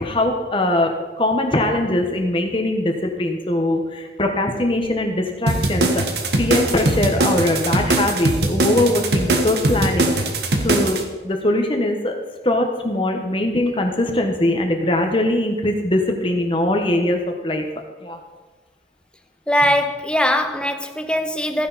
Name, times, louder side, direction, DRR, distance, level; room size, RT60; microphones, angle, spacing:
voice 1, 0.0-6.0 6.4-10.2 10.6-12.1 12.4-17.6 18.0-18.2, left 1 dB, 30° left, 3 dB, 1.2 m, -21 dB
sound 1, 5.5-11.0, right 2 dB, 70° right, 1.4 m, -20 dB
voice 2, 19.5-21.7, equal, 5° left, 7 dB, 0.8 m, -20 dB
15.0 x 10.0 x 4.2 m, 1.3 s
head